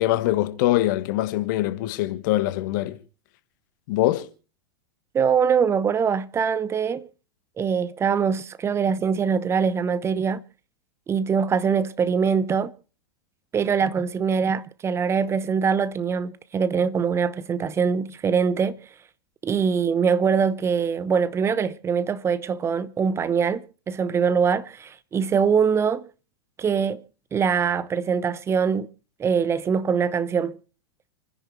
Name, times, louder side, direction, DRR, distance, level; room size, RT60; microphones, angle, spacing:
voice 1, 0.0-3.0 3.9-4.3, left 15 dB, 50° left, 1.4 m, -23 dB
voice 2, 5.1-7.1 7.6-10.4 11.1-12.7 13.5-18.8 19.4-26.1 26.6-27.0 27.3-28.9 29.2-30.6, right 6 dB, 20° right, 0.9 m, -23 dB
29.0 x 10.5 x 3.3 m
figure-of-eight pair, 95°, 13 cm